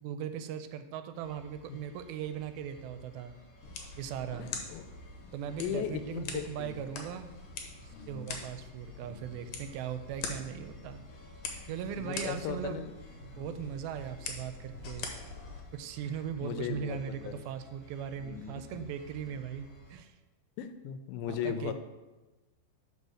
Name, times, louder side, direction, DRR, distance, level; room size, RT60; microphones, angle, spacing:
voice 1, 0.0-3.3 4.0-4.5 5.3-7.3 7.8-11.0 11.7-12.8 13.1-15.1 15.7-20.2 21.3-21.7, right 8 dB, 90° right, 10 dB, 2.4 m, -39 dB
sound 1, 1.2-20.0, right 2 dB, 30° left, 1.8 m, -56 dB
sound 2, 3.6-15.6, left 5 dB, 70° left, 2.2 m, -44 dB
voice 2, 4.4-4.9 5.2-5.3 5.6-6.9 7.9-8.3 11.5-11.6 11.9-12.9 13.3-13.5 16.4-17.4 18.2-18.6 19.3-19.4 20.6-21.7, left 9 dB, 90° left, 9 dB, 2.4 m, -38 dB
5.3 x 5.2 x 6.3 m, 1.1 s
omnidirectional pair, 4.2 m